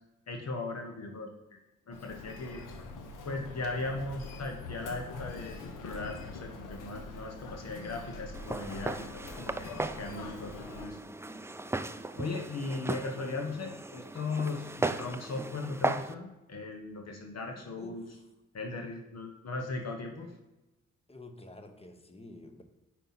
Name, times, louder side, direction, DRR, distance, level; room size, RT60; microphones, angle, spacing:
voice 1, 0.3-1.3 1.9-2.6 3.2-11.0 12.1-18.0 18.5-20.3, left 3 dB, 55° left, 2 dB, 1.1 m, -38 dB
Human voice, 1.9-10.9, left 3 dB, 85° left, 0.8 m, -44 dB
Walk footsteps, 8.3-16.1, right 2 dB, 10° right, 0.4 m, -37 dB
voice 2, 17.7-18.2 21.1-22.6, left 2 dB, 20° left, 6 dB, 1.0 m, -49 dB
5.3 x 4.7 x 5.6 m, 1.0 s
supercardioid pair, 45°, 31 cm